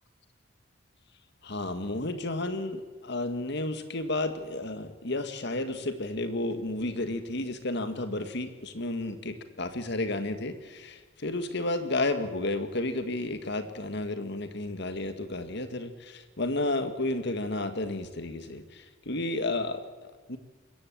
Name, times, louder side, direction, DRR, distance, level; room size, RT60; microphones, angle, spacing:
voice 1, 1.4-11.0 11.2-18.6 19.1-19.8 20.3-20.4, left 2 dB, 60° left, 9 dB, 2.0 m, -32 dB
21.5 x 16.0 x 8.8 m, 1.3 s
head